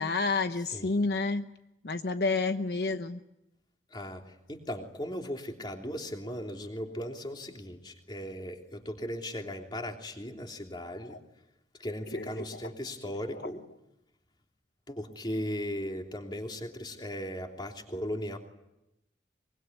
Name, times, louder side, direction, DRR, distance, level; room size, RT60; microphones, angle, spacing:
voice 1, 0.0-1.5 1.8-3.2 11.0-11.2 12.1-12.6 13.4-13.5, left 3 dB, 65° left, 8 dB, 1.0 m, -30 dB
voice 2, 3.9-11.2 11.8-13.6 14.9-18.4, equal, 25° left, 2 dB, 3.2 m, -37 dB
24.0 x 23.5 x 9.5 m, 0.89 s
head